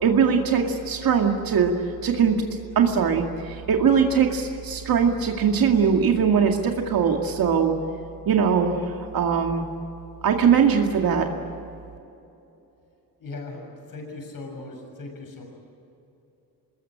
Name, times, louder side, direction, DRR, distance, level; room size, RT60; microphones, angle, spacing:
voice 1, 0.0-1.7 2.0-2.4 2.8-7.7 8.3-9.6 10.2-11.3, right 6 dB, 65° right, 2 dB, 2.3 m, -21 dB
voice 2, 13.2-15.4, left 3 dB, 60° left, 3 dB, 6.8 m, -38 dB
26.5 x 21.0 x 8.8 m, 2.8 s
cardioid pair, 145°, 38 cm